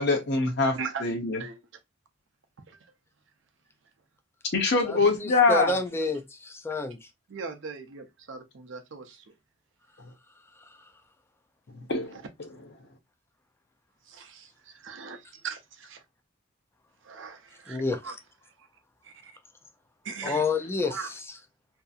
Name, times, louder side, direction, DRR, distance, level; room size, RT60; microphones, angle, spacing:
voice 1, 0.0-1.4 4.5-5.7 11.9-12.2 20.3-20.4, left 3 dB, 55° left, 0.7 m, -23 dB
voice 2, 4.8-7.1 10.6-10.7 17.7-18.0 20.2-21.3, left 3 dB, 10° left, 0.4 m, -29 dB
voice 3, 7.3-9.3 12.1-12.2 14.1-16.0 17.0-18.1 19.0-19.3 20.0-20.4 20.8-21.1, right 5 dB, 65° right, 0.6 m, -40 dB
2.7 x 2.5 x 2.3 m
head